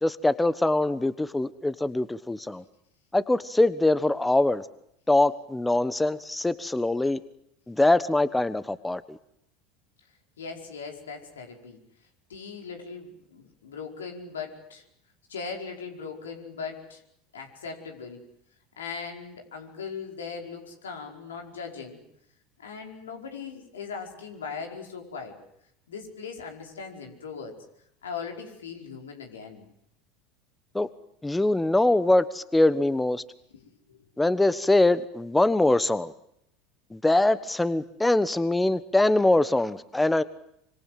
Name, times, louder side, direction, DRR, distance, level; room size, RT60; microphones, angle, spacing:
voice 1, 0.0-2.6 3.1-4.6 5.1-7.2 7.7-9.2 30.7-30.9 31.2-33.2 34.2-36.1 36.9-40.2, left 2 dB, 10° left, 15 dB, 1.2 m, -23 dB
voice 2, 10.4-11.8 12.3-14.8 15.3-17.0 17.3-18.2 18.8-22.0 22.6-25.4 25.9-27.6 28.0-29.6 33.5-34.0, left 5 dB, 85° left, 3 dB, 4.9 m, -39 dB
25.5 x 25.5 x 7.7 m, 0.76 s
hypercardioid pair, 80°, 0 cm